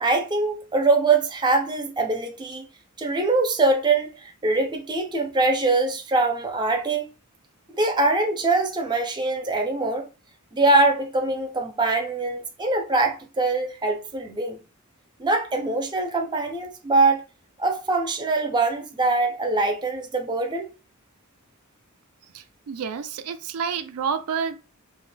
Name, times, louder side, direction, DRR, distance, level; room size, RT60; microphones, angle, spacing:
voice 1, 0.0-2.6 3.0-7.1 7.8-10.0 10.5-14.6 15.2-17.2 17.6-20.7, right 3 dB, 20° right, 0.4 m, -23 dB
voice 2, 22.3-24.6, right 6 dB, 90° right, 0.4 m, -29 dB
2.4 x 2.1 x 3.2 m
head